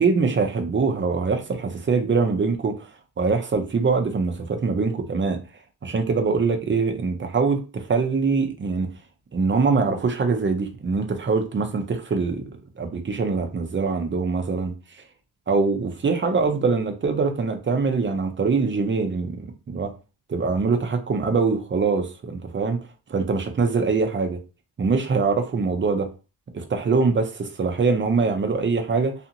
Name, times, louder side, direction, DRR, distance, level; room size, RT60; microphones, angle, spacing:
voice 1, 0.0-2.9 3.2-5.4 5.8-8.9 9.3-12.4 12.8-14.7 15.5-19.9 20.3-22.8 23.1-24.4 24.8-26.1 26.5-29.1, right 4 dB, 30° right, 0.6 m, -23 dB
2.6 x 2.5 x 2.8 m
cardioid pair, 105°, 40 cm